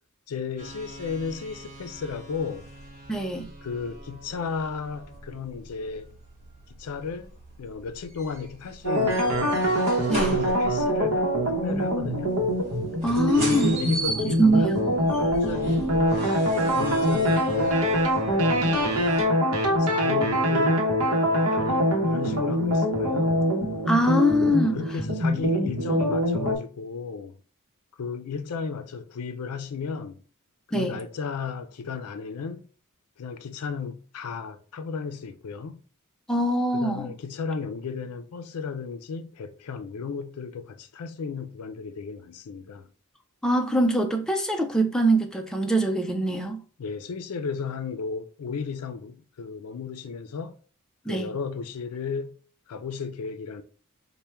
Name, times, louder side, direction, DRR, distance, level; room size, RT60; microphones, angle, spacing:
voice 1, 0.3-2.7 3.6-6.1 6.7-7.3 7.6-9.6 10.2-12.4 13.3-14.7 15.2-17.8 18.4-19.1 19.8-20.9 21.3-23.5 24.7-27.4 28.0-30.2 30.7-32.7 33.2-35.8 36.7-42.9 46.8-50.6 51.1-52.4 52.7-53.6, left 5 dB, 80° left, 0.4 m, -34 dB
sound 1, 0.6-19.3, right 1 dB, 30° right, 1.6 m, -39 dB
voice 2, 3.1-3.5 10.1-10.3 13.0-13.7 14.4-14.9 23.9-24.8 30.7-31.0 36.3-37.1 43.4-46.6 51.1-51.3, right 1 dB, 5° left, 0.3 m, -23 dB
sound 2, 8.8-26.6, equal, 75° right, 0.8 m, -24 dB
3.3 x 2.2 x 4.3 m
head